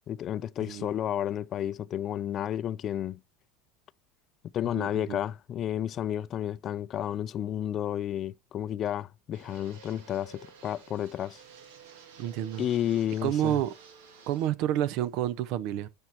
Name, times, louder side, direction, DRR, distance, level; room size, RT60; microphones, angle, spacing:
voice 1, 0.1-3.2 4.5-11.4 12.6-13.6, left 10 dB, 40° left, 0.3 m, -31 dB
voice 2, 4.8-5.2 12.2-12.7 13.2-13.7 14.3-15.9, right 12 dB, 60° right, 0.6 m, -29 dB
Fixed-wing aircraft airplane, 9.3-14.5, right 6 dB, 80° right, 1.6 m, -52 dB
13.0 x 5.3 x 2.9 m
supercardioid pair, 105°, 0 cm